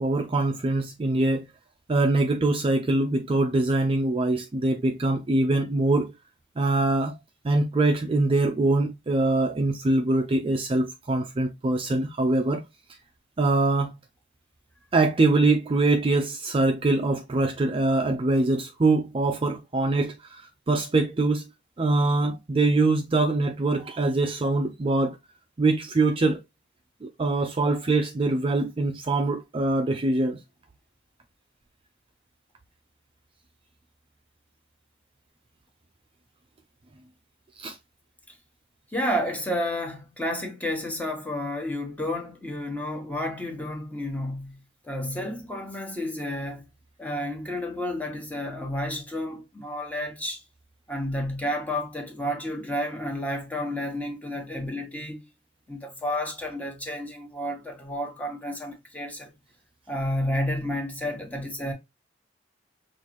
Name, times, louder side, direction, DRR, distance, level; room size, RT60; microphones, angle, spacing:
voice 1, 0.0-1.4 1.9-6.1 6.6-7.1 7.4-12.6 13.4-13.9 14.9-20.1 20.7-21.4 21.8-25.2 25.6-26.4 27.0-30.4 37.6-37.7, right 2 dB, 30° right, 0.4 m, -23 dB
voice 2, 38.9-44.6 44.8-46.6 47.0-50.4 50.9-55.3 55.7-59.3 59.9-61.7, left 1 dB, 10° left, 1.1 m, -31 dB
5.5 x 2.5 x 3.0 m
head